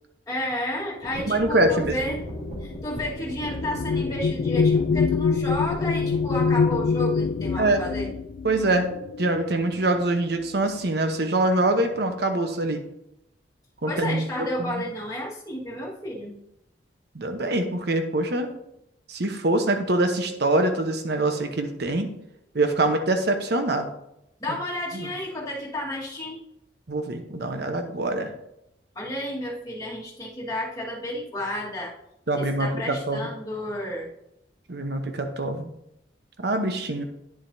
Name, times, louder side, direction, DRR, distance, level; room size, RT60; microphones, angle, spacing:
voice 1, 0.3-2.2 2.6-8.1 13.9-16.4 24.4-26.4 29.0-31.9 32.3-34.1, left 1 dB, 20° left, -4 dB, 1.7 m, -31 dB
sound 1, 1.0-6.8, equal, 40° right, 3.1 m, -38 dB
sound 2, 1.1-10.0 10.9-11.1 11.4-12.0, left 5 dB, 60° left, 0.3 m, -26 dB
voice 2, 1.3-1.9 7.6-7.8 8.4-8.9 9.2-12.8 13.8-14.8 17.1-18.5 19.1-22.1 22.5-23.9 24.9-25.1 26.9-28.3 32.3-33.2 34.7-35.7 36.4-37.0, right 2 dB, 65° right, 6 dB, 1.0 m, -24 dB
9.9 x 7.4 x 2.7 m, 0.83 s
head